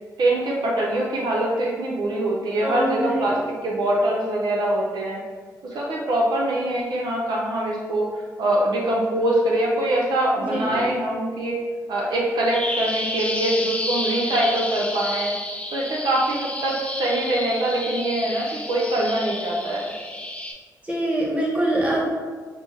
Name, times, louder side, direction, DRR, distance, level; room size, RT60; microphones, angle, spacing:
voice 1, 0.2-5.2 5.6-8.1 8.4-11.6 11.9-15.3 15.7-19.9, right 1 dB, 75° right, -3 dB, 0.7 m, -23 dB
voice 2, 2.6-3.5 10.3-10.9 20.8-22.1, right 1 dB, 20° right, -4 dB, 1.3 m, -24 dB
Bird vocalization bird call bird song, 12.5-20.5, left 1 dB, 15° left, 0.6 m, -30 dB
5.8 x 2.0 x 3.4 m, 1.5 s
cardioid pair, 70°, 7 cm